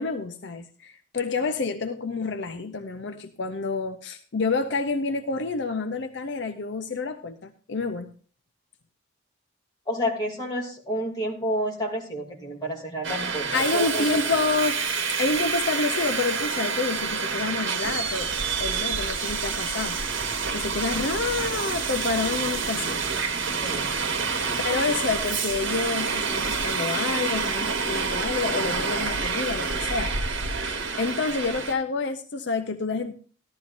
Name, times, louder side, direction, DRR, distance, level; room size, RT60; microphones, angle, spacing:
voice 1, 0.0-8.1 13.5-14.8 15.1-20.1 20.5-23.1 24.6-33.1, left 4 dB, 60° left, 8 dB, 0.6 m, -28 dB
voice 2, 9.9-14.1 23.6-23.9, equal, 20° left, -2 dB, 2.6 m, -30 dB
Subway metro underground, 13.0-31.7, right 5 dB, 80° right, 1.3 m, -28 dB
15.0 x 11.5 x 2.5 m, 0.41 s
head